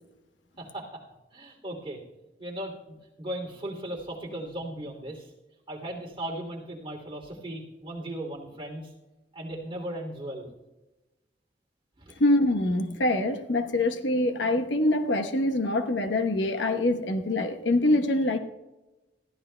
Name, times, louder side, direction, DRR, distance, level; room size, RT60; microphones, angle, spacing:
voice 1, 0.6-1.0 1.3-2.0 2.4-5.3 5.7-8.9 9.3-10.5 12.0-12.2, right 1 dB, 30° right, -1 dB, 2.9 m, -37 dB
voice 2, 12.2-18.4, left 1 dB, 85° left, 6 dB, 1.1 m, -24 dB
21.5 x 15.0 x 2.3 m, 1.1 s
head